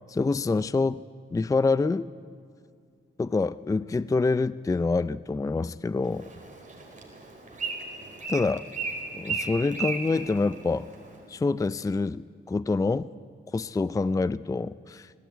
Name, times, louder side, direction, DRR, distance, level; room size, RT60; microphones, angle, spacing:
voice 1, 0.1-1.0 1.3-2.1 3.2-6.3 8.3-8.6 9.1-10.9 11.3-13.1 13.5-15.3, left 3 dB, 15° left, 18 dB, 0.4 m, -26 dB
Bird, 6.0-11.2, right 4 dB, 35° right, 4.7 m, -36 dB
18.5 x 15.5 x 9.1 m, 2.2 s
cardioid pair, 60°, 21 cm